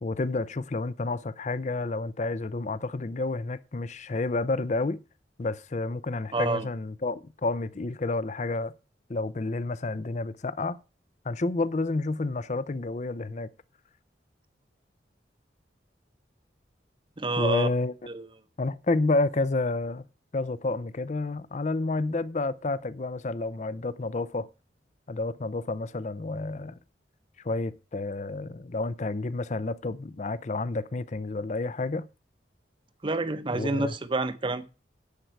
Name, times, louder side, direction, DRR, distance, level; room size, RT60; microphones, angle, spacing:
voice 1, 0.0-5.0 5.4-8.7 9.1-10.8 11.2-13.5 17.4-17.9 18.6-20.0 20.3-24.5 25.1-26.8 27.4-32.1 33.5-33.9, left 3 dB, 40° left, 0.6 m, -30 dB
voice 2, 6.3-6.7 17.2-17.7 18.1-18.3 33.0-34.7, right 2 dB, 30° right, 0.8 m, -28 dB
10.5 x 8.1 x 4.6 m
head